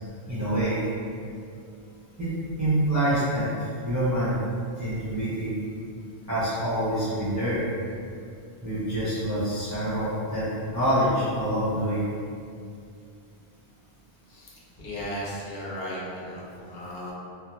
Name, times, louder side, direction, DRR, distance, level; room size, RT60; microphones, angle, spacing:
voice 1, 0.3-0.8 2.2-2.3 2.6-3.5 3.8-4.4 4.8-5.5 6.3-7.6 8.6-10.5 10.7-12.0, right 1 dB, 25° right, -11 dB, 0.4 m, -26 dB
voice 2, 14.3-17.1, equal, 65° left, -5 dB, 0.8 m, -36 dB
2.5 x 2.1 x 2.9 m, 2.4 s
omnidirectional pair, 1.1 m